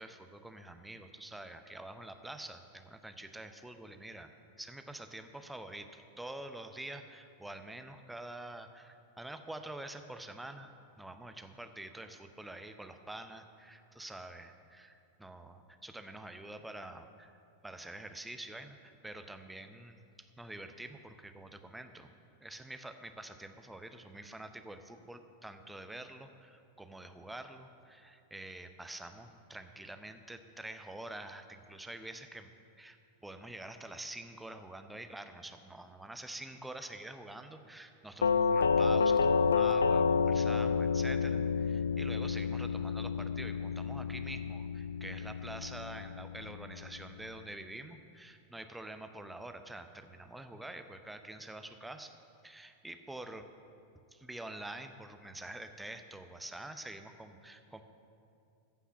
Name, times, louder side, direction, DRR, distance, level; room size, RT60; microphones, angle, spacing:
voice 1, 0.0-4.3 4.6-17.3 17.6-32.5 32.8-33.0 33.2-52.1 52.4-53.5 54.1-57.8, right 1 dB, 5° right, 7 dB, 0.7 m, -47 dB
Doorbell, 38.2-47.1, left 5 dB, 70° left, 0.3 m, -30 dB
14.5 x 5.7 x 7.3 m, 2.5 s
figure-of-eight pair, 90°, 0 cm